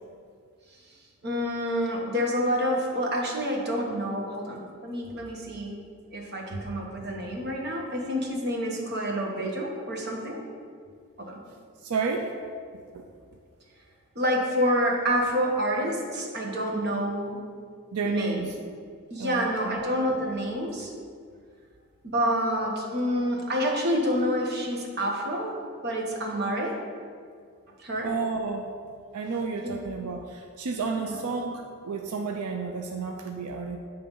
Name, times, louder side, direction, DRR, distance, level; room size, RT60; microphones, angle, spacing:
voice 1, 1.2-5.8 6.1-10.4 11.2-11.4 14.1-17.4 18.0-18.4 19.1-20.9 22.0-25.6 25.8-26.8 27.8-28.1 29.6-29.8 30.9-31.2, equal, 50° right, -1 dB, 1.2 m, -28 dB
voice 2, 11.8-12.3 12.7-13.1 17.9-18.5 19.2-19.7 28.0-28.7 29.1-33.8, right 4 dB, 90° right, 3 dB, 0.5 m, -31 dB
8.8 x 3.4 x 5.4 m, 2.1 s
head